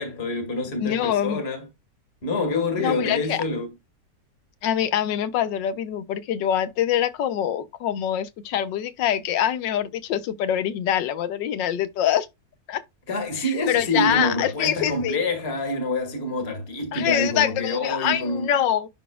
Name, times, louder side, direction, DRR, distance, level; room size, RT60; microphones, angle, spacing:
voice 1, 0.0-1.6 2.2-3.7 13.1-18.5, left 2 dB, 35° left, 2.2 m, -27 dB
voice 2, 0.8-1.4 2.8-3.4 4.6-12.3 12.7-12.8 13.3-15.2 16.9-18.9, left 10 dB, 90° left, 1.5 m, -24 dB
11.5 x 4.1 x 2.3 m
omnidirectional pair, 1.9 m